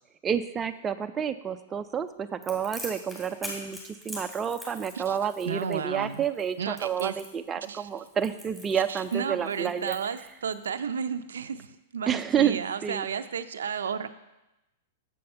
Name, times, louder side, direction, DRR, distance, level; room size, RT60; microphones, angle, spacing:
voice 1, 0.2-10.0 12.1-13.1, right 8 dB, 20° right, 8 dB, 0.4 m, -29 dB
Crackle, 2.4-10.7, equal, 10° left, 2.5 m, -43 dB
voice 2, 5.5-6.2 6.6-7.1 7.7-7.9 8.7-14.1, right 7 dB, 90° right, 10 dB, 0.4 m, -33 dB
7.6 x 5.6 x 5.4 m, 0.96 s
hypercardioid pair, 130°, 0 cm